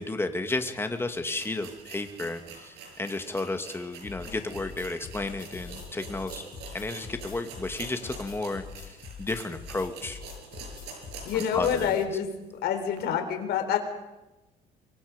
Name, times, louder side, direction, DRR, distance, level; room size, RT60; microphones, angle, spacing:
voice 1, 0.0-6.4 6.7-8.9 9.2-10.2 11.3-12.0, left 2 dB, 15° left, 7 dB, 2.3 m, -32 dB
sound 1, 0.8-0.9 1.3-12.0 12.3-12.4 12.9-13.0, right 5 dB, 80° right, 6.9 m, -45 dB
sound 2, 4.0-12.0, left 7 dB, 55° left, 3.0 m, -45 dB
voice 2, 11.2-12.3 12.6-13.8, left 9 dB, 75° left, 6 dB, 4.2 m, -27 dB
25.5 x 23.5 x 5.3 m, 1.0 s
cardioid pair, 110°, 17 cm